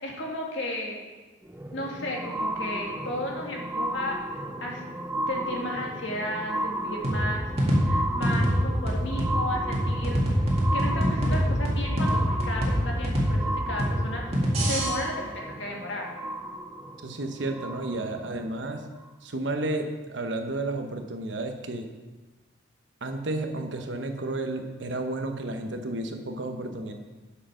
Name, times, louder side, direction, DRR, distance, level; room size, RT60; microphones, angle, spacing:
voice 1, 0.0-1.0 1.7-4.8 5.3-7.5 7.8-16.1, left 1 dB, 75° left, -1 dB, 1.9 m, -34 dB
sound 1, 1.4-18.3 19.0-19.1, right 1 dB, 10° right, 0.5 m, -34 dB
sound 2, 7.0-14.9, equal, 35° right, 2.0 m, -25 dB
voice 2, 17.0-18.8 19.2-21.9 23.0-26.9, right 2 dB, 75° right, 5 dB, 1.0 m, -32 dB
7.8 x 6.7 x 5.6 m, 1.3 s
head